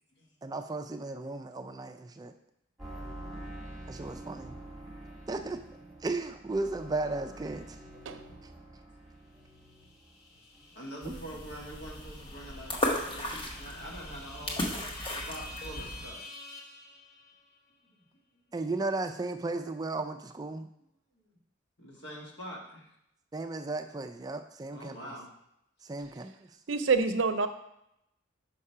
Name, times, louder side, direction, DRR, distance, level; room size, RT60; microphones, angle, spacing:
voice 1, 0.4-2.3 3.9-4.6 5.3-5.6 6.0-7.8 8.4-8.5 11.0-11.2 18.5-20.7 23.3-25.1 25.8-26.6, right 2 dB, 20° right, 7 dB, 0.3 m, -35 dB
sound 1, 2.8-10.3 10.5-11.2 11.5-11.6, right 1 dB, ahead, 1.7 m, -46 dB
sound 2, 9.5-17.6, left 3 dB, 50° left, 1.0 m, -49 dB
voice 2, 10.6-16.3 17.9-18.1 21.2-21.3 21.8-22.9 24.7-25.3, equal, 70° left, -2 dB, 1.6 m, -45 dB
sound 3, 11.0-16.1, left 1 dB, 25° left, 0.9 m, -36 dB
voice 3, 26.7-27.5, right 4 dB, 90° right, 9 dB, 0.6 m, -26 dB
5.3 x 4.8 x 5.5 m, 0.80 s
head